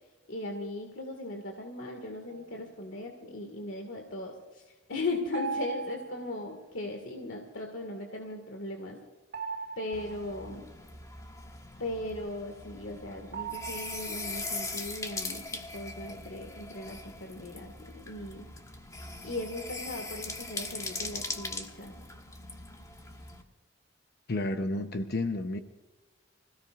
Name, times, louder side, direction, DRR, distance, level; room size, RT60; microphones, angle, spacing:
voice 1, 0.3-9.0 9.8-10.6 11.8-18.5 19.2-21.9, left 2 dB, 85° left, 3 dB, 2.1 m, -38 dB
sound 1, 2.3-2.7 5.3-6.5 9.3-10.4 13.3-14.5, right 5 dB, 55° right, 2.4 m, -38 dB
sound 2, 9.9-23.4, left 3 dB, 20° left, 1.4 m, -41 dB
voice 2, 24.3-25.6, left 2 dB, 55° left, 6 dB, 0.9 m, -31 dB
26.5 x 16.5 x 2.5 m, 1.1 s
head